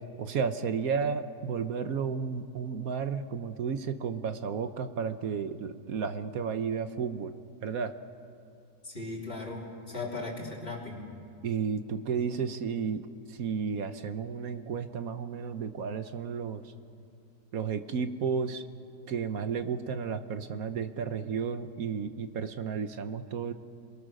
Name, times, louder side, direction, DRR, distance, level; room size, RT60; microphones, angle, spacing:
voice 1, 0.0-7.3 7.6-7.9 11.4-13.0 13.3-16.6 17.5-18.6 19.1-23.5, right 6 dB, 60° right, 10 dB, 1.2 m, -32 dB
voice 2, 8.8-11.1, left 2 dB, 30° left, -2 dB, 3.6 m, -37 dB
27.5 x 22.0 x 6.5 m, 2.4 s
omnidirectional pair, 1.9 m